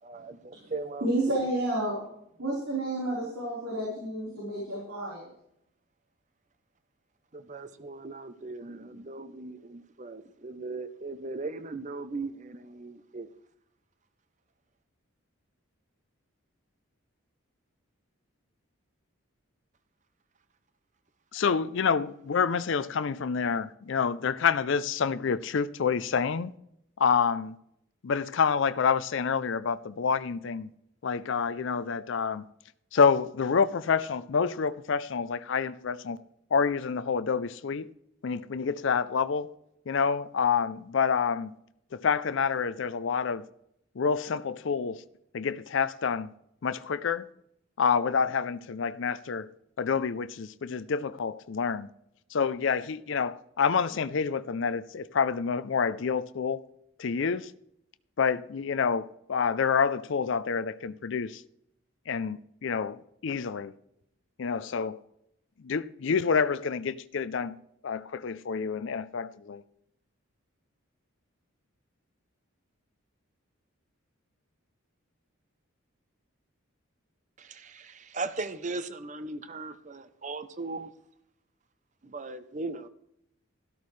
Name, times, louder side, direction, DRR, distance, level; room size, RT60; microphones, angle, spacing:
voice 1, 0.0-1.1 7.3-13.3 77.4-80.9 82.0-82.9, right 3 dB, 35° right, 0.7 m, -38 dB
voice 2, 1.0-2.0 2.4-5.3, right 1 dB, 80° right, 4.1 m, -30 dB
voice 3, 21.3-26.5 27.0-27.6 28.0-30.7 31.0-32.4 32.9-36.2 36.5-37.9 38.2-39.5 39.9-41.5 41.9-43.5 44.0-45.0 45.3-46.3 46.6-47.3 47.8-51.9 52.3-56.6 57.0-57.5 58.2-61.4 62.1-63.7 64.4-65.0 65.6-67.6 67.8-69.6, left 6 dB, 60° left, 0.4 m, -28 dB
13.0 x 12.5 x 3.2 m
head